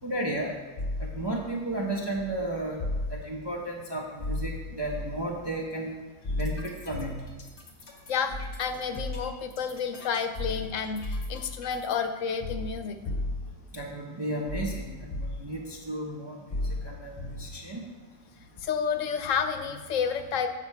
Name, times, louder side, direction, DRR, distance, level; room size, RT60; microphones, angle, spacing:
voice 1, 0.0-0.5 1.0-5.9 6.3-7.2 13.7-17.8, right 1 dB, 25° right, -2 dB, 0.6 m, -34 dB
sound 1, 0.8-1.3 2.1-3.3 4.2-5.3 6.2-7.4 8.3-9.4 10.3-11.5 12.4-13.6 14.5-15.5 16.5-17.6 18.6-18.7, left 2 dB, 35° left, 0.8 m, -34 dB
sound 2, 6.2-12.0, left 3 dB, 60° left, 1.3 m, -50 dB
voice 2, 8.1-13.0 18.6-20.5, left 6 dB, 80° left, 8 dB, 1.0 m, -30 dB
7.4 x 6.0 x 4.5 m, 1.3 s
omnidirectional pair, 1.3 m